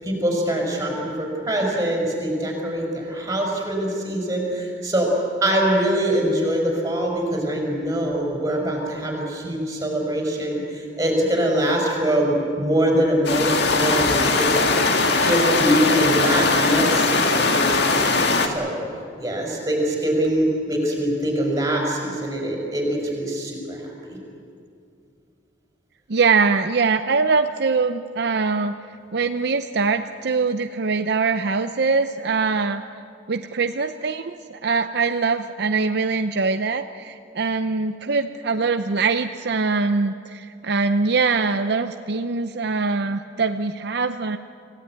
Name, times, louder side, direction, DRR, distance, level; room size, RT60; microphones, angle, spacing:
voice 1, 0.0-5.1 5.4-14.6 15.2-18.7 19.2-24.2, right 1 dB, 15° right, -1 dB, 5.8 m, -23 dB
sound 1, 13.2-18.5, left 3 dB, 60° left, 1.9 m, -20 dB
voice 2, 26.1-28.8 29.1-32.8 33.3-44.4, right 4 dB, 60° right, 8 dB, 0.6 m, -23 dB
26.5 x 16.5 x 9.1 m, 2.5 s
head